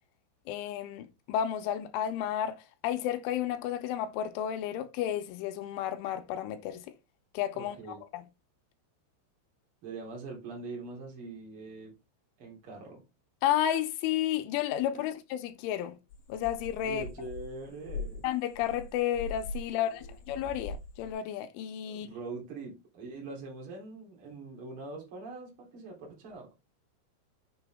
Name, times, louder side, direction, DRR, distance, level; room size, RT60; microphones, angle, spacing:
voice 1, 0.5-2.6 2.8-6.8 7.3-7.8 8.1-8.2 13.4-16.0 16.3-17.0 18.2-22.1, left 11 dB, 80° left, 3.2 m, -32 dB
voice 2, 7.5-8.0 9.8-11.9 12.4-13.0 14.9-15.1 16.8-18.2 19.7-20.1 20.4-20.5 21.8-26.5, right 3 dB, 30° right, 3.1 m, -43 dB
sound 1, 16.1-19.7 20.0-21.1, left 3 dB, 50° left, 1.9 m, -41 dB
7.2 x 6.6 x 3.5 m
omnidirectional pair, 5.8 m